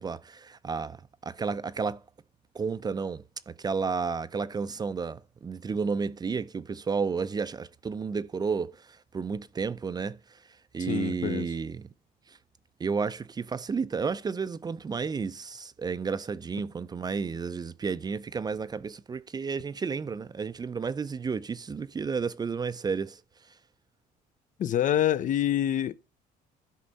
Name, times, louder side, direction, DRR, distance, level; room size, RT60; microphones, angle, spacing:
voice 1, 0.0-2.0 2.5-10.2 10.7-11.8 12.8-23.2, right 5 dB, 25° right, 0.4 m, -32 dB
voice 2, 10.8-11.5 24.6-26.0, left 11 dB, 50° left, 0.5 m, -26 dB
13.0 x 5.3 x 4.0 m
cardioid pair, 110°, 17 cm